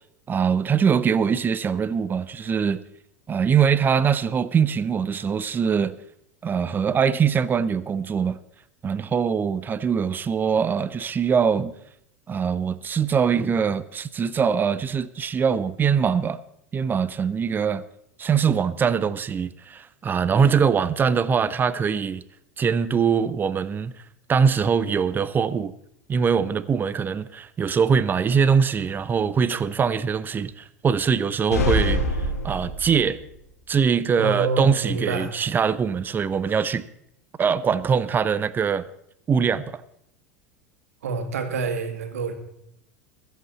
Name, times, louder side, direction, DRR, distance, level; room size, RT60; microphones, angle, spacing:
voice 1, 0.3-2.8 3.3-6.0 6.4-8.4 8.8-11.7 12.3-16.4 16.7-17.8 18.2-22.2 22.6-23.9 24.3-25.7 26.1-32.0 32.4-33.2 33.7-36.9 37.4-38.8 39.3-39.8, right 6 dB, 25° right, 0.8 m, -22 dB
sound 1, 31.5-33.2, equal, 80° left, 4.0 m, -24 dB
voice 2, 34.2-35.3 41.0-42.3, right 4 dB, 70° right, 2.1 m, -27 dB
22.0 x 8.1 x 4.2 m
figure-of-eight pair, 80°, 8 cm